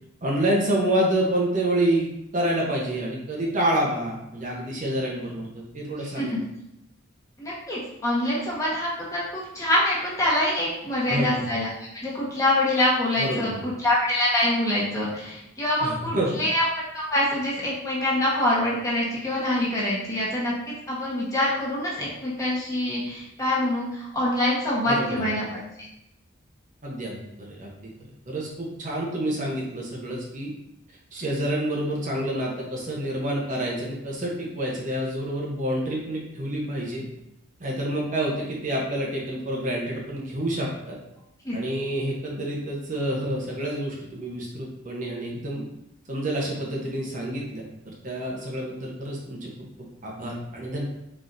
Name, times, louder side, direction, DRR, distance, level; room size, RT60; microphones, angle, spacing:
voice 1, 0.2-6.4 11.1-11.4 13.2-13.7 15.8-16.4 24.9-25.3 26.8-27.9 28.3-30.5 31.1-37.0 37.6-41.0 41.5-45.6 46.1-49.5 50.0-50.8, right 1 dB, 40° right, -2 dB, 0.8 m, -28 dB
voice 2, 7.4-16.6 16.9-20.5 20.9-25.5 25.8-25.9 41.4-41.6, left 1 dB, 15° left, -6 dB, 1.1 m, -25 dB
4.5 x 4.0 x 2.6 m, 0.84 s
head